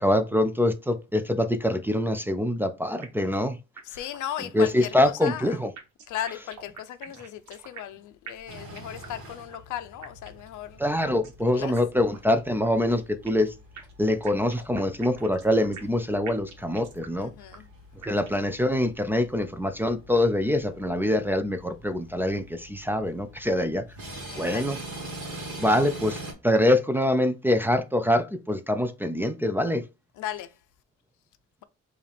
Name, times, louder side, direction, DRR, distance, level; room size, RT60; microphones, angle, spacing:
voice 1, 0.0-3.6 3.9-4.0 4.4-5.7 10.8-13.5 14.0-17.3 18.1-23.8 24.4-24.8 25.6-29.8, left 1 dB, 5° right, 0.4 m, -24 dB
sound 1, 3.0-3.4 3.8-3.9 4.1-4.2 4.6-5.5 5.8-8.0 8.3-9.2 9.5-9.6 10.0-10.5 11.0-11.4 11.8-11.9 12.1-12.2 12.6-13.5 13.8-16.0 16.3-17.2 17.5-17.6 18.0-18.5, right 6 dB, 70° right, 1.2 m, -45 dB
voice 2, 4.0-5.4 6.1-10.8 11.6-11.7 17.2-17.6 24.3-24.6 30.2-30.5, left 11 dB, 85° left, 0.6 m, -36 dB
sound 2, 8.5-26.3, right 1 dB, 50° right, 1.7 m, -44 dB
4.8 x 2.5 x 3.4 m
cardioid pair, 125°, 30 cm